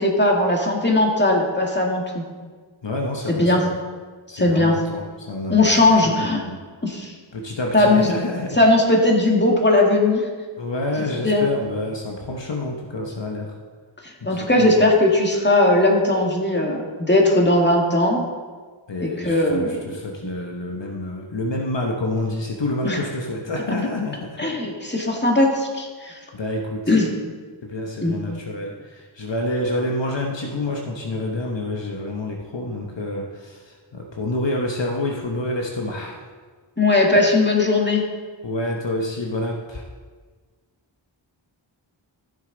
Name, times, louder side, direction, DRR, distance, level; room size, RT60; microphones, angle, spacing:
voice 1, 0.0-2.2 3.3-3.6 4.3-4.8 5.5-6.4 6.8-7.1 7.7-8.1 8.6-10.2 11.2-11.4 14.0-18.2 19.0-19.8 20.2-20.3 22.8-23.0 24.4-26.2 26.9-27.1 28.0-28.1 36.8-38.1, left 2 dB, 20° left, 0 dB, 2.0 m, -18 dB
voice 2, 2.8-3.8 4.3-6.6 7.3-8.6 10.6-13.6 14.2-14.7 18.9-24.5 26.3-26.9 27.6-36.2 38.4-39.9, left 1 dB, 65° left, 0 dB, 1.1 m, -28 dB
14.5 x 6.7 x 3.9 m, 1.5 s
wide cardioid pair, 40°, 47 cm